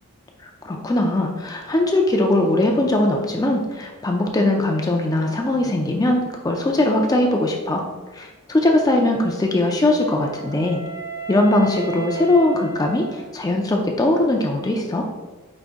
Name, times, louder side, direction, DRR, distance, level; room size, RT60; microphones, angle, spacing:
voice 1, 0.4-7.8 8.1-10.8 11.3-15.1, left 1 dB, 15° left, 1 dB, 0.4 m, -20 dB
Wind instrument woodwind instrument, 9.5-13.7, right 6 dB, 50° right, 0.8 m, -35 dB
5.0 x 2.6 x 3.5 m, 1.2 s
head